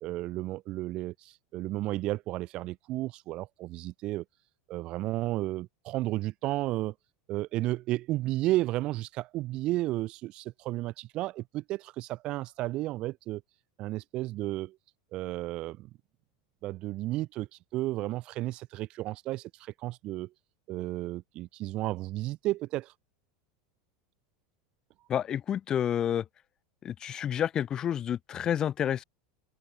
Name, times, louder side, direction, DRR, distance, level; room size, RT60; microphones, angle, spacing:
voice 1, 0.0-4.2 4.7-6.9 7.3-13.4 13.8-14.8 15.1-15.9 16.6-20.3 20.7-22.9, right 17 dB, 50° right, 1.1 m, -33 dB
voice 2, 25.1-26.2 26.8-29.0, left 9 dB, 35° left, 1.1 m, -29 dB
open air
hypercardioid pair, 95°, 2 cm